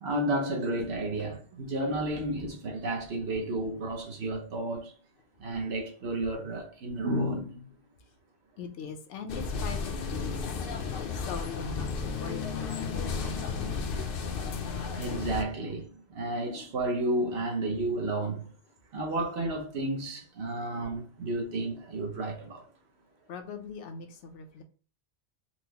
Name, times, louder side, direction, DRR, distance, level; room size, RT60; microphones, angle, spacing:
voice 1, 0.0-4.9 5.4-7.8 15.0-18.5 18.9-22.7, right 1 dB, 65° right, 1.1 m, -32 dB
voice 2, 8.6-10.6 11.1-14.1 23.3-24.6, left 4 dB, 85° left, 1.0 m, -41 dB
sound 1, 9.3-15.4, left 5 dB, 60° left, 0.7 m, -33 dB
4.3 x 2.1 x 2.8 m
omnidirectional pair, 1.2 m